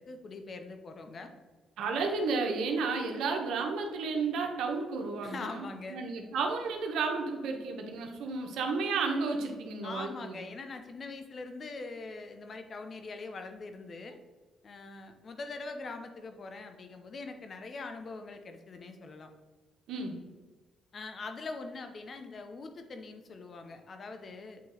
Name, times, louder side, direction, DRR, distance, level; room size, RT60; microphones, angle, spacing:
voice 1, 0.0-1.3 5.2-6.0 9.8-14.2 14.6-19.3 20.9-24.6, left 3 dB, 45° left, 6 dB, 0.8 m, -42 dB
voice 2, 1.8-10.4 19.9-20.2, right 4 dB, 85° right, 2 dB, 1.0 m, -32 dB
8.3 x 3.1 x 4.0 m, 1.3 s
cardioid pair, 90°, 0 cm